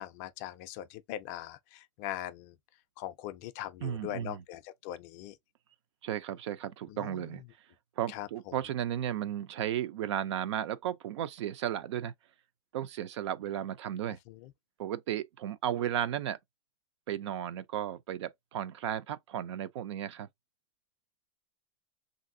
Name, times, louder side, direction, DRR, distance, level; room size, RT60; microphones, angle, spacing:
voice 1, 0.0-2.6 3.0-5.3 6.9-7.2 8.1-8.3 14.3-14.5, left 13 dB, 30° left, 0.3 m, -41 dB
voice 2, 3.8-4.4 6.0-7.4 8.0-12.1 12.7-14.2 14.8-16.4 17.1-20.3, right 10 dB, 65° right, 0.5 m, -34 dB
3.2 x 2.6 x 2.6 m
supercardioid pair, 170°, 16 cm